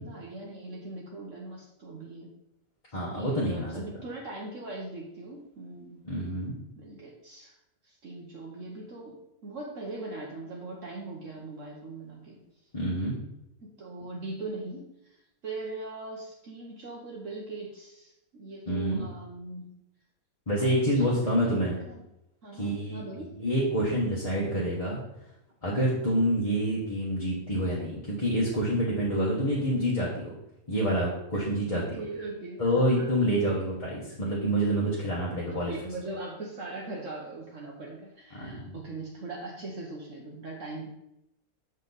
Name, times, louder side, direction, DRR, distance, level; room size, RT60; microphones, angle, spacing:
voice 1, 0.0-2.3 3.1-6.0 6.8-7.5 7.8-9.2 9.4-12.4 13.6-15.2 15.4-19.8 20.5-22.0 22.4-23.3 31.3-31.5 31.7-33.4 35.4-40.9, right 2 dB, 60° right, -2 dB, 1.3 m, -40 dB
voice 2, 2.9-3.8 6.0-6.6 12.7-13.2 18.7-19.1 20.5-21.8 22.5-23.0 23.4-25.0 25.6-30.3 30.7-32.0 32.6-35.7 38.3-38.7, equal, 25° left, -6 dB, 1.2 m, -27 dB
7.2 x 5.4 x 4.0 m, 0.84 s
omnidirectional pair, 1.6 m